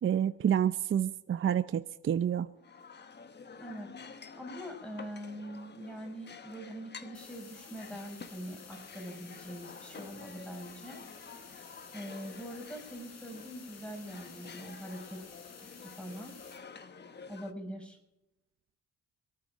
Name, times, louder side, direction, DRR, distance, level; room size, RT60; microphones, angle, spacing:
voice 1, 0.0-2.5, right 9 dB, 45° right, 11 dB, 0.6 m, -28 dB
sound 1, 2.6-17.5, left 5 dB, 35° left, 1.2 m, -50 dB
voice 2, 3.6-3.9 4.4-11.0 11.9-16.3 17.3-18.0, equal, 5° left, 4 dB, 5.7 m, -43 dB
sound 2, 7.1-16.6, left 5 dB, 60° left, 5.0 m, -53 dB
25.0 x 9.5 x 5.0 m, 0.91 s
cardioid pair, 90°, 30 cm